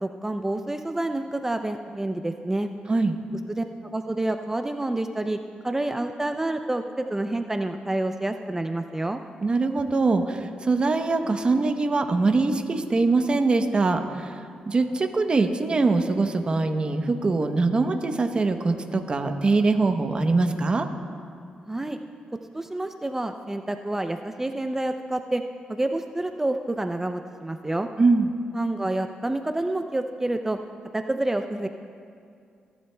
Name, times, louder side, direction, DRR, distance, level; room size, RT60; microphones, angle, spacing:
voice 1, 0.0-2.7 3.5-5.4 5.6-9.2 21.7-22.0 22.5-25.4 25.7-27.9 28.5-30.6 30.9-31.7, right 1 dB, 15° right, 6 dB, 0.4 m, -28 dB
voice 2, 9.4-14.4 14.7-20.9 28.0-28.3, right 3 dB, 35° right, 6 dB, 0.8 m, -23 dB
28.0 x 11.0 x 2.2 m, 2.3 s
cardioid pair, 100°, 3 cm